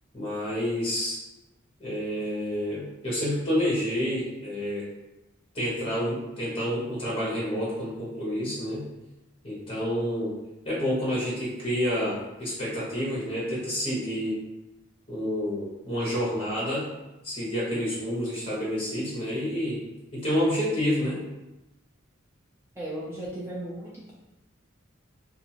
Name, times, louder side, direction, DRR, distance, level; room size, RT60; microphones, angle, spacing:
voice 1, 0.1-1.2 1.8-4.9 5.5-8.8 9.4-10.3 10.6-14.4 15.1-16.9 17.2-19.8 20.1-21.2, equal, 25° left, -6 dB, 1.0 m, -29 dB
voice 2, 22.8-24.1, right 1 dB, 10° right, -7 dB, 0.3 m, -36 dB
2.5 x 2.4 x 2.8 m, 0.98 s
head